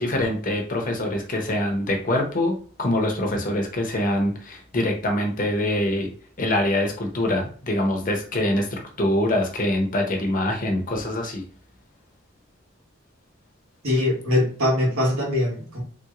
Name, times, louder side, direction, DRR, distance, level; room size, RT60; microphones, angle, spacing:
voice 1, 0.0-6.1 6.4-11.4, left 1 dB, 40° left, 2 dB, 0.7 m, -24 dB
voice 2, 13.8-15.8, left 1 dB, 75° right, -4 dB, 1.4 m, -22 dB
3.4 x 2.9 x 2.4 m, 0.43 s
head